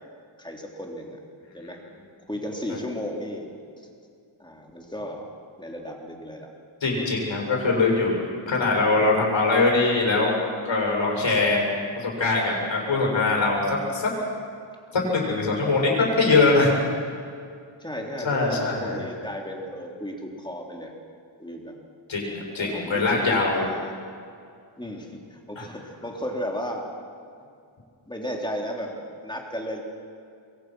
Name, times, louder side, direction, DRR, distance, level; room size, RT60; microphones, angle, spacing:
voice 1, 0.4-1.2 1.5-1.8 2.3-3.5 4.4-5.3 5.6-6.5 17.8-20.9 21.4-21.7 22.6-24.0 24.8-26.8 28.1-29.8, equal, 10° left, 0 dB, 3.3 m, -34 dB
voice 2, 6.8-8.1 8.5-10.4 10.6-11.6 12.0-14.1 14.9-16.8 18.2-19.0 22.1-23.7 25.6-25.7, left 3 dB, 65° left, -1 dB, 7.0 m, -22 dB
27.0 x 22.5 x 6.2 m, 2.4 s
wide cardioid pair, 120°, 49 cm